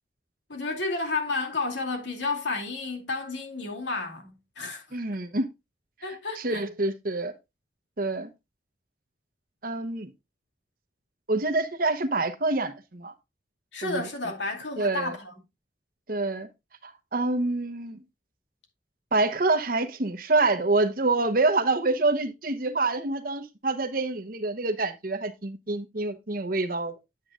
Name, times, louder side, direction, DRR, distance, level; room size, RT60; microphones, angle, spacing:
voice 1, 0.5-4.3 4.6-5.0 6.0-6.6 13.7-15.3, left 3 dB, 75° left, 2.5 m, -31 dB
voice 2, 4.9-5.5 6.4-7.3 8.0-8.3 9.6-10.1 11.3-13.1 13.8-14.0 14.8-15.2 16.1-16.5 16.8-18.0 19.1-26.9, right 2 dB, 50° right, 1.0 m, -26 dB
9.2 x 8.5 x 2.4 m
head